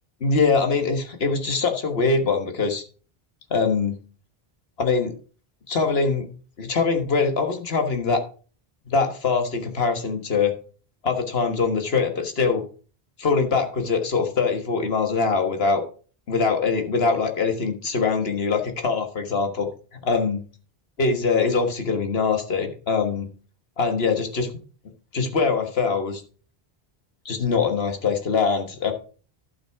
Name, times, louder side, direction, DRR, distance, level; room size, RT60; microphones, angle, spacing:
voice 1, 0.2-2.8 3.5-4.0 4.8-5.1 5.7-6.3 6.6-8.2 8.9-10.5 11.0-12.6 13.2-15.8 16.3-19.7 20.0-20.4 21.0-23.3 23.8-24.5 25.1-26.2 27.2-28.9, left 4 dB, 75° left, 6 dB, 1.7 m, -23 dB
11.5 x 5.7 x 4.6 m, 0.39 s
omnidirectional pair, 1.0 m